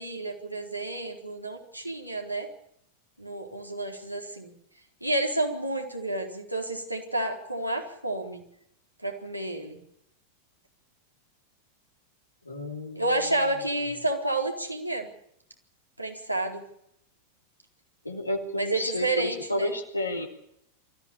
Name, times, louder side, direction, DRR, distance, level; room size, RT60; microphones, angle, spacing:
voice 1, 0.0-2.5 3.2-4.5 5.0-8.4 9.0-9.8 13.0-15.1 16.0-16.6 18.6-19.7, right 2 dB, 90° right, 1 dB, 4.2 m, -30 dB
voice 2, 12.4-13.5 18.0-20.3, left 1 dB, 85° left, 2 dB, 3.1 m, -32 dB
23.5 x 15.0 x 8.7 m, 0.74 s
figure-of-eight pair, 90°, 0 cm